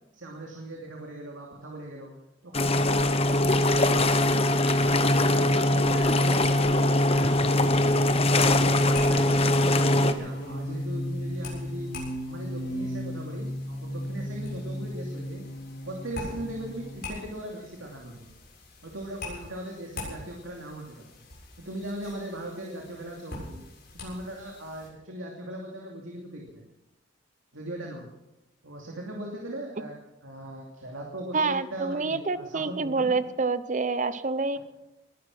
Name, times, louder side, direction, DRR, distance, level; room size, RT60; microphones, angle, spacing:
voice 1, 0.1-2.1 2.4-4.6 5.3-7.6 8.2-11.9 12.3-15.4 15.8-18.3 18.8-21.1 21.6-23.6 23.9-26.6 27.5-28.1 28.6-30.0 30.2-33.2, right 1 dB, 80° right, -1 dB, 2.7 m, -39 dB
sound 1, 2.5-10.1, left 1 dB, 30° left, 1.0 m, -22 dB
sound 2, 4.6-17.0, equal, 80° left, 6.3 m, -36 dB
sound 3, 7.4-24.9, left 2 dB, 50° left, 7.6 m, -45 dB
voice 2, 31.3-34.6, right 4 dB, 40° right, 14 dB, 0.8 m, -27 dB
20.5 x 11.5 x 6.2 m, 0.96 s
head